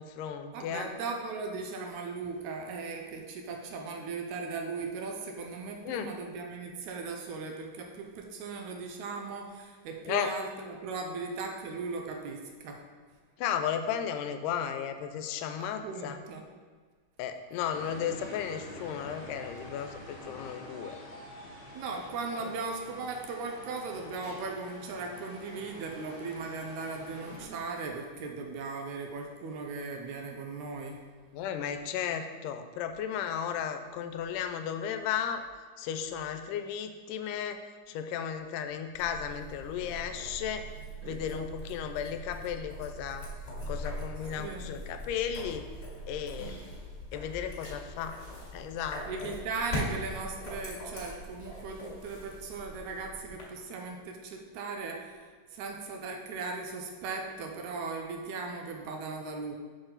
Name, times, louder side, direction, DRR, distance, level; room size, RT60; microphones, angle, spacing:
voice 1, 0.0-0.9 5.8-6.1 10.1-10.3 13.4-16.2 17.2-21.0 31.3-35.4 35.8-37.6 37.9-40.7 41.0-43.3 43.7-45.7 46.1-46.6 47.1-48.1 48.5-49.3, left 8 dB, 80° left, 8 dB, 2.1 m, -34 dB
voice 2, 0.5-12.8 15.6-16.4 21.7-31.0 41.0-41.2 44.4-44.7 49.1-59.6, right 4 dB, 75° right, 3 dB, 1.9 m, -38 dB
sound 1, 17.7-27.4, left 1 dB, 50° left, 1.5 m, -47 dB
sound 2, 38.9-53.4, equal, 30° left, 2.0 m, -41 dB
6.6 x 6.0 x 3.9 m, 1.5 s
omnidirectional pair, 3.8 m